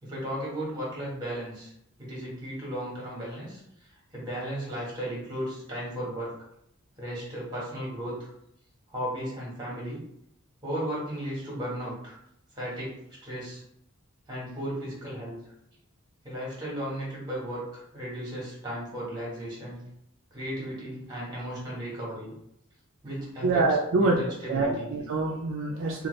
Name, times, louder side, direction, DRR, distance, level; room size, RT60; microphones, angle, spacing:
voice 1, 0.0-1.7 2.0-6.3 7.0-8.3 8.9-10.0 10.6-12.2 12.5-13.6 14.3-15.4 16.2-19.8 20.3-22.3 23.0-23.6 24.0-24.9, equal, 20° right, -4 dB, 1.3 m, -35 dB
voice 2, 23.4-24.2 24.5-26.1, right 3 dB, 60° right, 0 dB, 0.3 m, -25 dB
2.7 x 2.4 x 3.1 m, 0.75 s
head